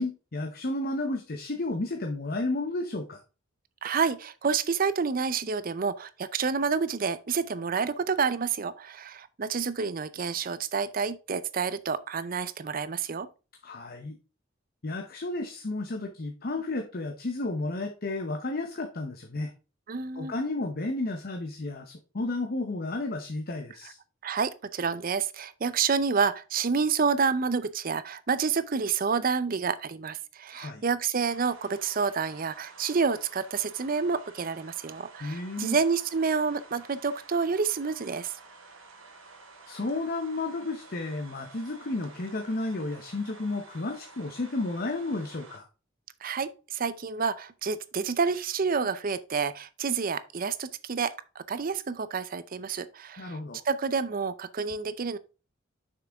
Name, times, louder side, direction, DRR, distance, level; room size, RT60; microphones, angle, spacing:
voice 1, 0.0-3.2 13.6-14.2 14.8-19.5 20.2-24.0 30.5-30.8 35.2-35.8 39.7-45.7 53.2-53.6, left 2 dB, 50° left, 0.8 m, -32 dB
voice 2, 3.8-13.3 19.9-20.3 24.2-38.3 46.2-53.4 53.7-55.2, right 5 dB, 45° right, 0.5 m, -29 dB
sound 1, 31.3-45.6, right 3 dB, 90° right, 1.9 m, -51 dB
6.8 x 6.0 x 3.5 m
head